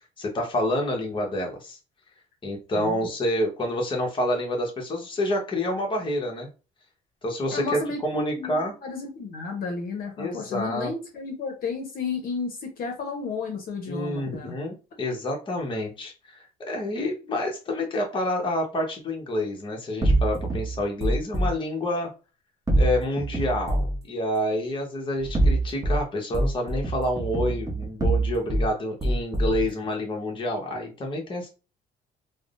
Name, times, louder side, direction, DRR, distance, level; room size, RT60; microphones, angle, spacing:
voice 1, 0.2-1.8 2.4-6.5 7.2-8.7 10.2-10.9 13.9-22.1 22.8-23.8 24.1-31.5, left 1 dB, 30° left, 1 dB, 0.9 m, -28 dB
voice 2, 2.7-3.1 7.5-14.5, left 4 dB, 60° left, 2 dB, 0.8 m, -33 dB
sound 1, 20.0-21.5 22.7-24.0 25.2-26.0 26.3-28.7 29.0-29.7, right 2 dB, 20° right, 0.7 m, -24 dB
3.4 x 2.0 x 2.4 m, 0.33 s
cardioid pair, 110°, 17 cm